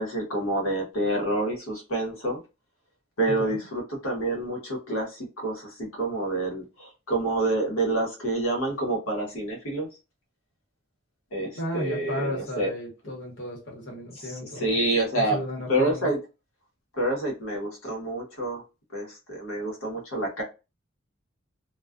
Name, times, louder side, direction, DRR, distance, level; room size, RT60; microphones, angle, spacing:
voice 1, 0.0-2.4 3.2-9.9 11.3-12.7 14.1-15.4 15.7-16.2 16.9-18.6 18.9-20.4, right 1 dB, 80° left, 1.0 m, -28 dB
voice 2, 3.3-3.6 11.5-14.8 15.1-16.1, left 1 dB, 55° left, 1.0 m, -34 dB
2.3 x 2.3 x 2.4 m
head